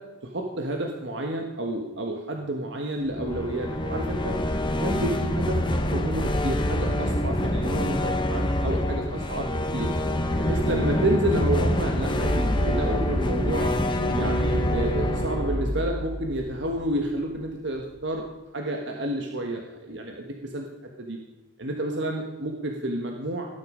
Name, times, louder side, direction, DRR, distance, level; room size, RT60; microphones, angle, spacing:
voice 1, 0.2-4.4 4.7-9.9 10.4-13.7 14.1-18.2 18.5-20.7 21.0-21.2 21.6-23.5, right 1 dB, 60° right, 1 dB, 1.5 m, -30 dB
sound 1, 3.1-17.1, left 1 dB, 25° left, 1.0 m, -26 dB
sound 2, 4.9-12.1, equal, ahead, 5.2 m, -44 dB
18.0 x 10.5 x 5.1 m, 1.2 s
head